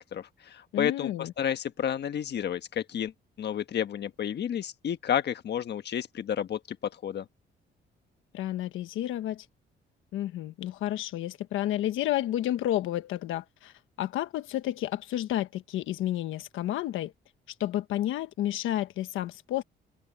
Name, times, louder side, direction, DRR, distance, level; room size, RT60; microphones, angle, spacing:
voice 1, 0.0-3.1 3.4-7.2, left 9 dB, 60° left, 1.4 m, -31 dB
voice 2, 0.7-1.3 8.3-9.5 10.1-13.7 14.0-17.1 17.6-19.6, left 13 dB, 85° left, 1.3 m, -31 dB
open air
cardioid pair, 90°, 20 cm